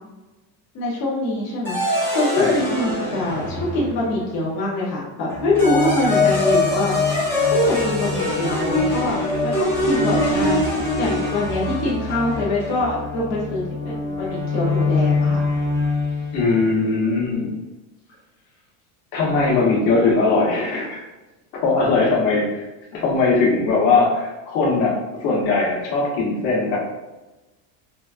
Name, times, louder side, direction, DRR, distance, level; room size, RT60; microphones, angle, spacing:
voice 1, 0.7-6.9 7.5-10.6 11.0-15.4, left 1 dB, 45° left, -5 dB, 0.7 m, -24 dB
sound 1, 1.6-4.2 5.3-16.4, left 2 dB, 5° left, 0.7 m, -23 dB
voice 2, 16.3-17.5 19.1-21.0 21.5-22.6 22.9-24.9 25.2-26.8, left 3 dB, 80° left, -3 dB, 1.1 m, -20 dB
3.8 x 2.2 x 2.4 m, 1.1 s
cardioid pair, 170°, 41 cm